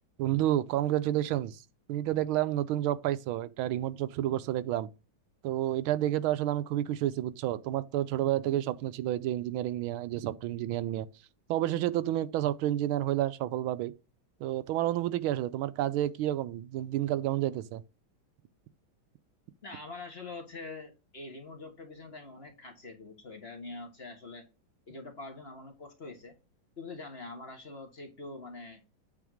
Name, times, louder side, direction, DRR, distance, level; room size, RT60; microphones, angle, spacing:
voice 1, 0.2-1.6 1.9-4.9 5.4-11.1 11.5-13.9 14.4-17.8, right 13 dB, 85° right, 1.5 m, -30 dB
voice 2, 19.6-24.4 24.9-26.3 26.8-28.8, left 3 dB, 30° left, 1.6 m, -44 dB
8.6 x 3.4 x 6.3 m
omnidirectional pair, 2.2 m